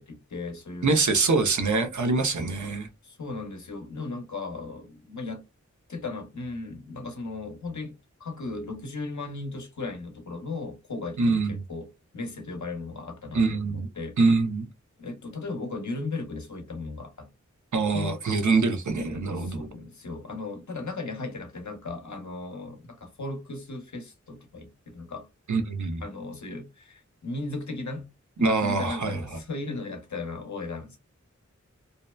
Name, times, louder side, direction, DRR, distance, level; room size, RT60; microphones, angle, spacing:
voice 1, 0.0-1.0 3.0-5.4 5.9-7.9 8.2-11.9 12.1-14.2 15.0-17.3 17.9-18.2 19.4-25.3 26.0-28.1 28.4-31.0, left 3 dB, 75° left, 0.8 m, -36 dB
voice 2, 0.8-2.9 11.2-11.6 13.3-13.9 14.2-14.7 17.7-19.7 25.5-26.0 28.4-29.2, right 3 dB, 75° right, 0.6 m, -24 dB
2.7 x 2.1 x 2.2 m
wide cardioid pair, 40°, 30 cm